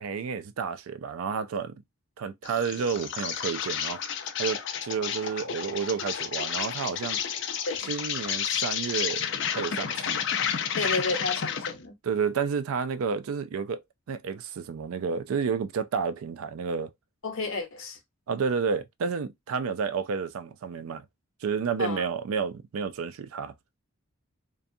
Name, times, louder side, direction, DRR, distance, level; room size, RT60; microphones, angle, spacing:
voice 1, 0.0-1.8 2.2-4.0 4.4-7.2 7.9-10.2 12.0-16.9 18.3-21.1 21.4-23.5, right 6 dB, 80° right, 0.4 m, -31 dB
Insect, 2.4-11.8, left 8 dB, 55° left, 0.4 m, -31 dB
voice 2, 10.8-11.9 17.2-18.0 21.8-22.1, left 3 dB, 75° left, 0.8 m, -31 dB
2.6 x 2.3 x 2.6 m
head